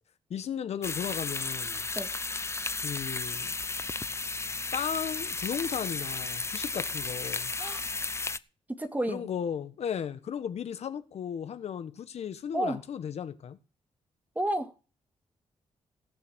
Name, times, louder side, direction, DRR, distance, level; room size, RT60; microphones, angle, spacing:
voice 1, 0.3-1.8 2.8-3.5 4.7-7.5 9.1-13.6, left 8 dB, 70° left, 1.3 m, -35 dB
sound 1, 0.8-8.4, left 3 dB, 25° left, 0.7 m, -34 dB
voice 2, 8.8-9.3 12.5-12.8 14.4-14.7, right 1 dB, 15° right, 2.2 m, -30 dB
17.0 x 7.0 x 6.3 m
cardioid pair, 70°, 11 cm